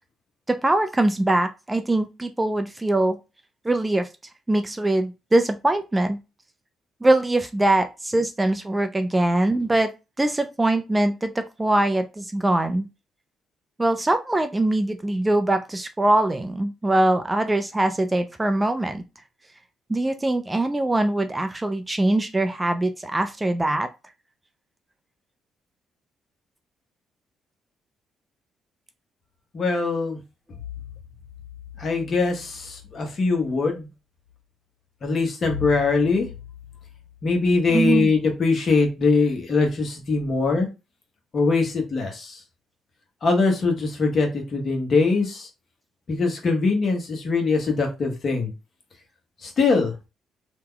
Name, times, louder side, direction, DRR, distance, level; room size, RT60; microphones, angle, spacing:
voice 1, 0.5-3.2 3.6-4.1 4.5-6.2 7.0-9.9 10.2-12.9 13.8-19.0 19.9-23.9 37.7-38.1, right 1 dB, 15° right, 8 dB, 0.4 m, -22 dB
voice 2, 29.5-30.2 31.8-33.9 35.0-36.3 37.2-40.7 41.3-42.4 43.2-45.5 46.1-48.5 49.4-49.9, left 4 dB, 45° left, 2 dB, 1.2 m, -22 dB
2.9 x 2.2 x 3.7 m, 0.27 s
cardioid pair, 90°, 0 cm